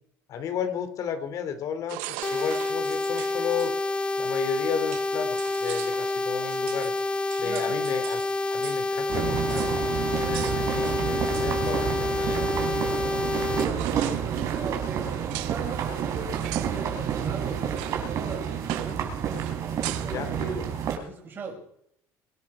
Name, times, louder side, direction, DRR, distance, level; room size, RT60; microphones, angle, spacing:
voice 1, 0.3-3.7 4.2-6.9 7.4-8.2 8.5-12.5 13.2-13.4 20.0-20.5, left 7 dB, 55° left, 10 dB, 2.8 m, -33 dB
sound 1, 1.9-3.7 4.5-4.6 4.9-8.8 9.1-9.2 9.5-9.8 10.3-11.8 13.1-13.2 13.5-15.6 16.3-16.8 17.1-17.3 17.8-18.1 18.4-19.0 19.3-20.2, right 18 dB, 85° right, 1.0 m, -40 dB
sound 2, 2.2-13.6, left 2 dB, 15° left, 0.7 m, -28 dB
voice 2, 7.4-7.8 13.1-19.2 19.7-21.6, right 4 dB, 30° right, -1 dB, 5.7 m, -39 dB
sound 3, 9.1-21.0, right 8 dB, 50° right, 4.5 m, -29 dB
24.0 x 10.0 x 4.9 m, 0.70 s
cardioid pair, 120°, 7 cm